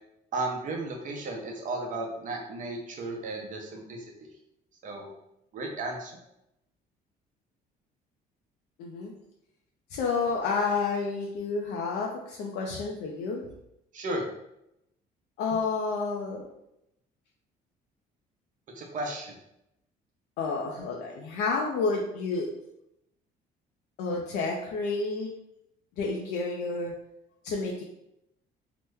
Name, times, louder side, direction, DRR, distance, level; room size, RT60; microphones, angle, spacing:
voice 1, 0.3-4.3 4.8-5.1 5.5-6.1 13.9-14.2 18.8-19.3, right 2 dB, 50° right, 1 dB, 0.7 m, -34 dB
voice 2, 8.8-9.1 9.9-13.4 15.4-16.4 20.4-22.5 24.0-25.3 26.0-26.9 27.4-27.8, left 4 dB, 85° left, -2 dB, 0.5 m, -30 dB
2.9 x 2.1 x 3.4 m, 0.82 s
cardioid pair, 110°, 17 cm